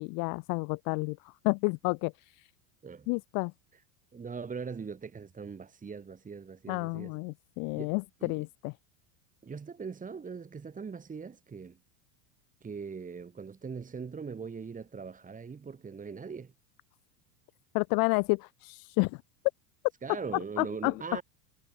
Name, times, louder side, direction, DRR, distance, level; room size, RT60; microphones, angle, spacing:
voice 1, 0.0-2.5 3.1-3.5 6.7-8.7 17.7-19.2 20.6-21.0, left 32 dB, 45° left, 0.7 m, -30 dB
voice 2, 4.1-7.1 7.7-7.9 8.2-8.4 9.4-11.8 12.6-16.5 20.0-21.2, right 5 dB, 15° right, 2.9 m, -41 dB
supercardioid pair, 120°, 48 cm